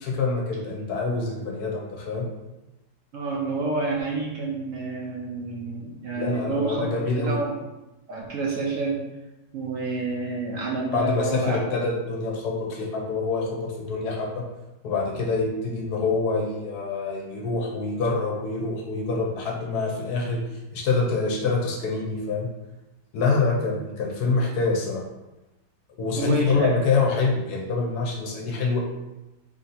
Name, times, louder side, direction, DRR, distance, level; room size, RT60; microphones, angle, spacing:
voice 1, 0.0-2.3 6.2-7.4 10.9-14.4 14.8-20.4 20.7-22.5 23.1-25.0 26.0-28.8, left 3 dB, 70° left, 0 dB, 1.2 m, -26 dB
voice 2, 3.1-6.9 7.2-7.5 8.1-9.0 9.5-11.6 26.2-26.7, right 2 dB, 60° right, -3 dB, 1.0 m, -28 dB
3.4 x 2.7 x 4.0 m, 1.0 s
omnidirectional pair, 1.8 m